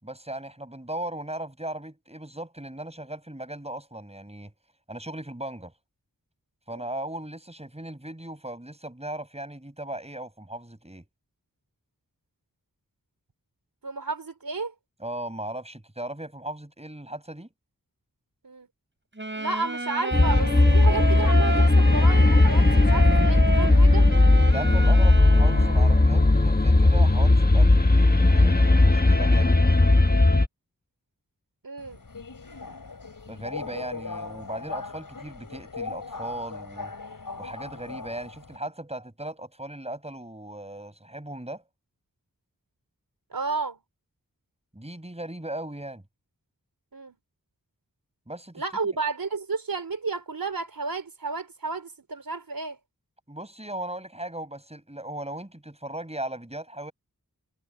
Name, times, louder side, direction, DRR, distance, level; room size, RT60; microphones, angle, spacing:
voice 1, 0.0-4.5 4.9-5.7 6.7-11.0 15.0-17.5 24.4-29.6 33.3-36.9 37.4-41.6 44.7-46.0 48.3-49.0 53.3-56.9, right 1 dB, 20° right, 7.0 m, -37 dB
voice 2, 13.8-14.7 18.4-18.7 19.3-24.1 31.6-32.0 43.3-43.8 46.9-47.2 48.5-52.8, right 4 dB, 80° right, 4.3 m, -32 dB
Wind instrument woodwind instrument, 19.2-26.3, right 2 dB, 35° right, 6.8 m, -31 dB
sound 1, 20.1-30.5, left 2 dB, 25° left, 1.3 m, -18 dB
Subway metro underground, 31.8-38.6, left 4 dB, 70° left, 5.5 m, -39 dB
wide cardioid pair, 50°, 34 cm